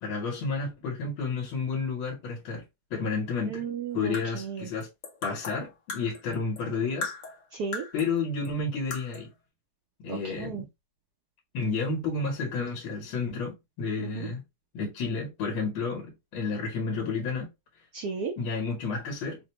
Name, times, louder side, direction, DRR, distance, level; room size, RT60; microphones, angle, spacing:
voice 1, 0.0-2.6 2.9-3.6 3.9-4.9 5.2-7.1 7.9-9.3 10.0-10.7 11.5-14.4 14.7-17.5 18.4-19.4, left 4 dB, 70° left, 1.7 m, -31 dB
voice 2, 3.5-4.7 7.5-7.9 10.1-10.6 14.0-14.3 17.9-18.3, right 6 dB, 85° right, 0.8 m, -34 dB
sound 1, 3.9-6.7 7.0-8.2 8.4-8.5 8.9-9.3, left 4 dB, 50° left, 1.2 m, -38 dB
4.9 x 2.1 x 2.9 m
omnidirectional pair, 2.4 m